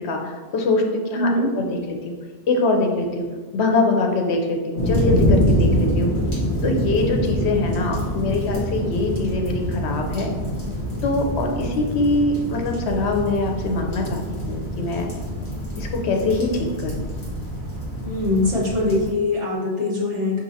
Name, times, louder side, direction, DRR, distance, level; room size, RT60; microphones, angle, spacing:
voice 1, 0.0-1.3 1.6-2.1 2.5-3.3 3.5-6.1 6.6-10.3 11.0-15.1 15.8-17.1, left 2 dB, 80° left, 2 dB, 0.9 m, -23 dB
voice 2, 1.1-1.5 18.0-20.4, left 2 dB, 30° right, -7 dB, 1.0 m, -22 dB
sound 1, 4.8-19.1, equal, 50° left, 1.5 m, -25 dB
5.1 x 2.7 x 2.7 m, 1.4 s
omnidirectional pair, 1.1 m